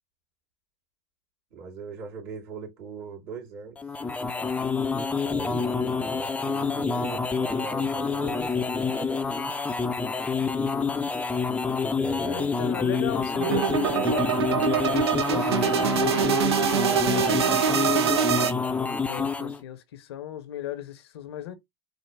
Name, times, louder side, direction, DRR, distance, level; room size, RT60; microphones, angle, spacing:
voice 1, 1.5-3.8 5.2-9.3 12.0-14.2, right 5 dB, 60° right, 2.9 m, -40 dB
sound 1, 3.8-19.6, left 5 dB, 10° left, 0.5 m, -27 dB
voice 2, 12.2-18.0 18.8-21.6, left 11 dB, 80° left, 0.8 m, -38 dB
sound 2, 13.4-18.5, right 8 dB, 85° right, 0.5 m, -24 dB
4.4 x 2.0 x 3.2 m
hypercardioid pair, 90°, 13 cm